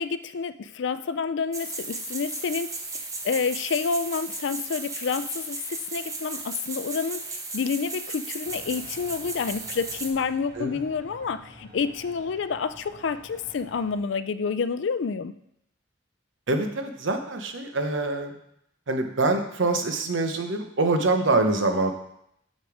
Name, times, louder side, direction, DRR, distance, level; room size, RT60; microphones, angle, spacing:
voice 1, 0.0-15.3, left 5 dB, 65° left, 13 dB, 0.4 m, -29 dB
sound 1, 1.5-10.1, right 3 dB, 15° right, 0.8 m, -35 dB
sound 2, 8.4-14.0, left 1 dB, 45° right, 1.6 m, -49 dB
voice 2, 16.5-18.3 18.9-21.9, right 2 dB, 70° right, 6 dB, 0.9 m, -25 dB
6.9 x 6.5 x 4.9 m, 0.75 s
head